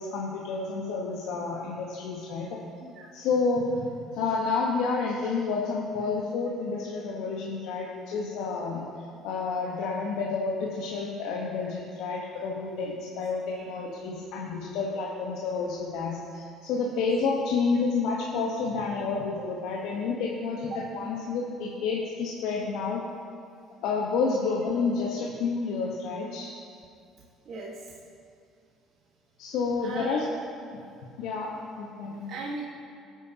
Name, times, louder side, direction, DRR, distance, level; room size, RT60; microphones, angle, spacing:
voice 1, 0.0-2.5 3.1-3.9 4.1-8.8 9.2-23.0 23.8-26.5 29.4-30.2 30.7-30.8 31.2-31.5 31.8-32.2, left 4 dB, 70° left, -2 dB, 1.3 m, -29 dB
voice 2, 27.5-27.8 29.8-30.3 32.3-32.6, right 3 dB, 55° right, -3 dB, 1.6 m, -37 dB
19.0 x 8.8 x 2.9 m, 2.5 s
hypercardioid pair, 60°, 0 cm